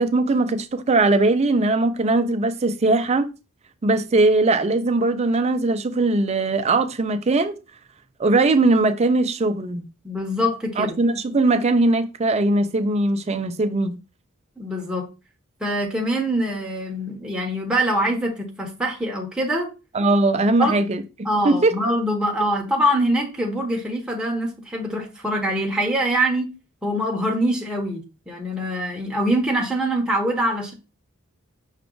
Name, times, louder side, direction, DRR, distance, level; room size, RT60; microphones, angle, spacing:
voice 1, 0.0-3.3 3.8-7.6 8.2-9.9 10.8-14.0 19.9-21.0 21.4-21.7, right 2 dB, 30° right, 0.4 m, -20 dB
voice 2, 10.0-10.9 14.6-15.0 15.6-19.7 20.6-20.8 21.2-26.5 26.8-30.7, equal, 5° right, 0.9 m, -24 dB
5.8 x 2.4 x 3.7 m
head